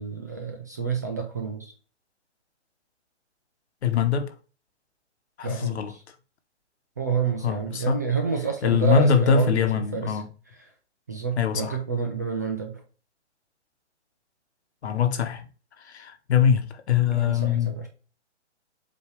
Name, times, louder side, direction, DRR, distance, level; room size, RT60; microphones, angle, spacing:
voice 1, 0.0-1.7 5.4-5.8 7.0-10.1 11.1-12.8 17.1-17.9, right 6 dB, 15° right, 0.3 m, -28 dB
voice 2, 3.8-4.3 5.4-5.9 7.4-8.0 8.6-10.3 11.4-11.8 14.8-15.5 15.8-17.8, left 7 dB, 65° left, 1.3 m, -23 dB
7.8 x 2.8 x 4.7 m
hypercardioid pair, 145°, 35 cm